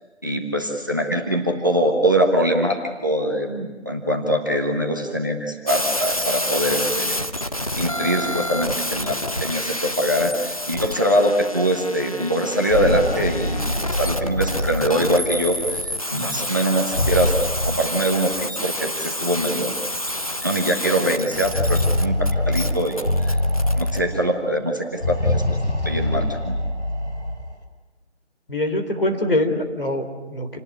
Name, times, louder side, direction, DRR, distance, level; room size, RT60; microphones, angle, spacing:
voice 1, 0.2-7.2 7.8-17.3 17.6-19.7 20.4-23.4 23.8-25.6 25.8-26.6, equal, 20° right, 1 dB, 1.3 m, -23 dB
sound 1, 5.7-24.0, left 1 dB, 30° left, 1.0 m, -29 dB
sound 2, 12.5-15.4 16.7-18.4 19.4-19.5 19.9-20.0 21.2-24.4 24.9-27.5, left 1 dB, 75° left, 4.9 m, -24 dB
voice 2, 28.5-30.6, left 1 dB, 50° left, 5 dB, 3.6 m, -23 dB
28.0 x 19.0 x 9.7 m, 1.2 s
figure-of-eight pair, 170°, 35 cm